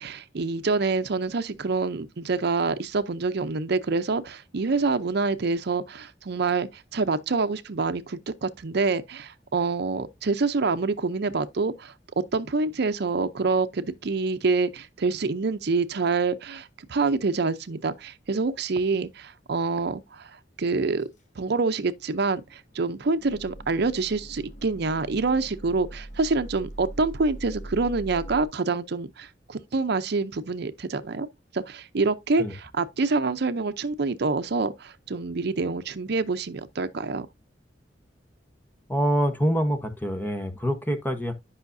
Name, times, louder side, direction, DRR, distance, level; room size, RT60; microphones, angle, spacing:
voice 1, 0.0-20.3 20.6-21.1 21.4-31.3 31.5-37.3, right 4 dB, 60° right, 0.6 m, -26 dB
sound 1, 21.0-21.1 21.6-28.4, right 1 dB, 45° left, 1.2 m, -42 dB
voice 2, 38.9-41.3, equal, 10° left, 1.0 m, -25 dB
10.5 x 5.6 x 2.6 m
head